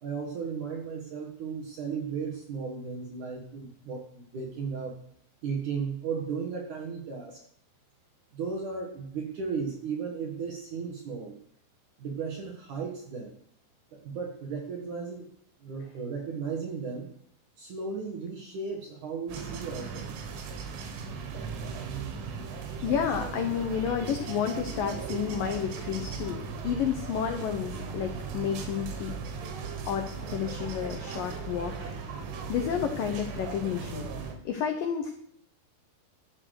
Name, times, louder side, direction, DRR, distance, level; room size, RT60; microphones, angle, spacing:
voice 1, 0.0-5.0 5.4-7.4 8.3-11.4 12.0-13.3 13.9-15.3 15.6-17.1 17.6-20.1, right 5 dB, 60° right, 0 dB, 2.1 m, -35 dB
sound 1, 19.3-34.3, right 5 dB, 85° right, 4.3 m, -37 dB
voice 2, 22.6-29.1 29.9-31.9 32.5-34.1 34.4-35.1, left 8 dB, 90° left, 5 dB, 1.9 m, -31 dB
12.5 x 8.7 x 6.5 m, 0.65 s
omnidirectional pair, 5.6 m